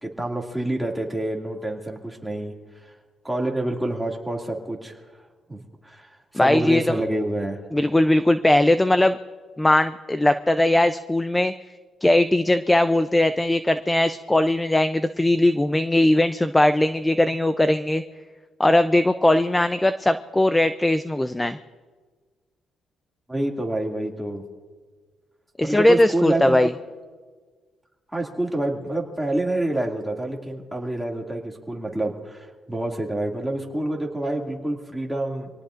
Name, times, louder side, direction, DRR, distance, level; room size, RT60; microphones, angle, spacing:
voice 1, 0.0-2.5 2.8-3.0 3.2-5.0 5.5-7.6 23.3-24.4 25.6-26.6 28.1-35.5, right 1 dB, 5° right, -1 dB, 2.4 m, -27 dB
voice 2, 6.3-6.9 7.7-9.2 9.6-11.5 12.0-18.0 18.6-21.6 25.6-26.7, left 1 dB, 10° left, 11 dB, 0.5 m, -19 dB
26.0 x 18.5 x 2.6 m, 1.5 s
cardioid pair, 90°, 0 cm